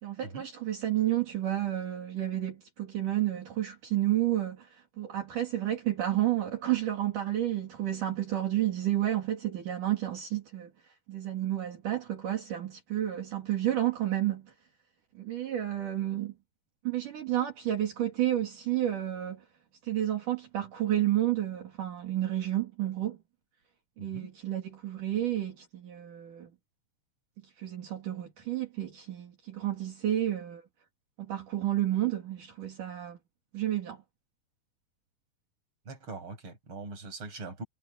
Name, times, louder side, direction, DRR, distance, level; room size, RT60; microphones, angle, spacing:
voice 1, 0.0-10.7 11.1-14.5 15.1-16.3 16.8-19.4 19.8-23.2 24.0-26.5 27.6-30.6 31.2-33.2 33.5-34.0, right 13 dB, 65° right, 4.4 m, -31 dB
voice 2, 24.0-24.3 35.9-37.6, right 3 dB, 35° right, 7.2 m, -42 dB
omnidirectional pair, 4.1 m